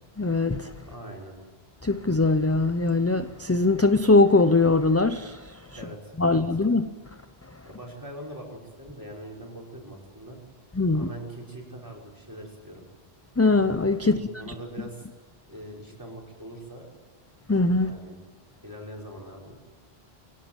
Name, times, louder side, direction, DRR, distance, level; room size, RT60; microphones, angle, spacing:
voice 1, 0.2-0.7 1.8-5.5 6.2-6.9 10.8-11.1 13.4-14.2 17.5-17.9, left 3 dB, 15° left, 0.6 m, -21 dB
voice 2, 0.8-1.4 5.7-6.4 7.6-10.4 10.9-12.8 14.1-15.1 15.5-16.9 17.8-18.2 18.6-19.5, right 1 dB, 20° right, 5.8 m, -42 dB
24.0 x 17.5 x 9.1 m
omnidirectional pair, 1.0 m